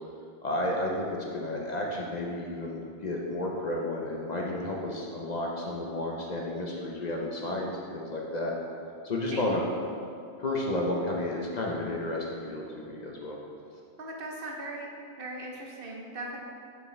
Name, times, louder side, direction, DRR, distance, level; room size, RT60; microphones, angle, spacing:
voice 1, 0.4-8.5 9.0-9.6 10.4-13.4, left 1 dB, 45° left, -2 dB, 0.7 m, -32 dB
voice 2, 14.0-14.9 15.2-16.4, right 2 dB, 60° right, -1 dB, 1.0 m, -38 dB
7.0 x 5.1 x 3.2 m, 2.4 s
omnidirectional pair, 1.1 m